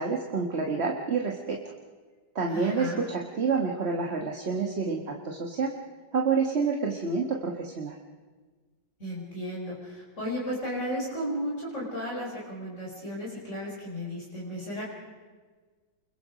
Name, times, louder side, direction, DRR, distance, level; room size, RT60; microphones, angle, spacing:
voice 1, 0.0-1.7 2.3-5.7 6.1-8.0, right 4 dB, 35° right, 0 dB, 1.7 m, -28 dB
voice 2, 2.5-3.0 9.0-14.8, equal, 40° left, -5 dB, 5.2 m, -34 dB
29.0 x 22.0 x 5.1 m, 1.4 s
omnidirectional pair, 2.0 m